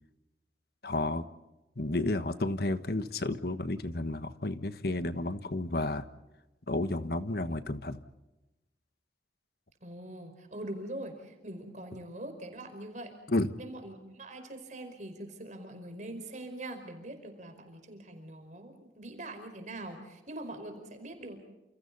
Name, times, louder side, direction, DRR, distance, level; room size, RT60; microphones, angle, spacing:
voice 1, 0.8-1.3 1.8-6.1 6.7-8.0 13.3-13.5, left 2 dB, 60° left, 11 dB, 1.3 m, -31 dB
voice 2, 9.8-13.2 13.6-21.4, right 1 dB, 45° right, 6 dB, 5.0 m, -43 dB
29.5 x 28.5 x 4.1 m, 1.0 s
head